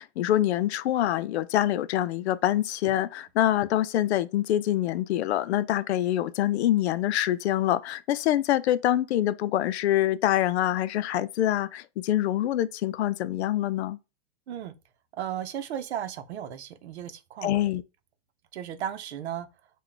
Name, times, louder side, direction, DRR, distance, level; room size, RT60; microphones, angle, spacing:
voice 1, 0.0-14.0 17.4-17.8, left 13 dB, 80° left, 0.5 m, -25 dB
voice 2, 15.1-17.6 18.5-19.5, right 10 dB, 90° right, 0.7 m, -35 dB
3.3 x 2.3 x 3.8 m
supercardioid pair, 160°, 32 cm